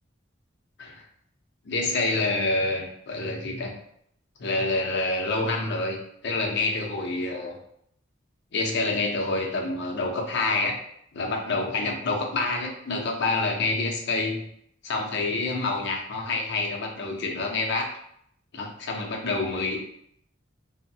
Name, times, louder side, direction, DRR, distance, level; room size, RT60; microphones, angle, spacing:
voice 1, 1.7-3.7 4.4-6.0 6.2-7.6 8.5-10.8 11.1-14.5 14.8-17.9 18.5-19.8, left 3 dB, 60° left, 0 dB, 0.6 m, -27 dB
3.0 x 2.1 x 2.7 m, 0.69 s
head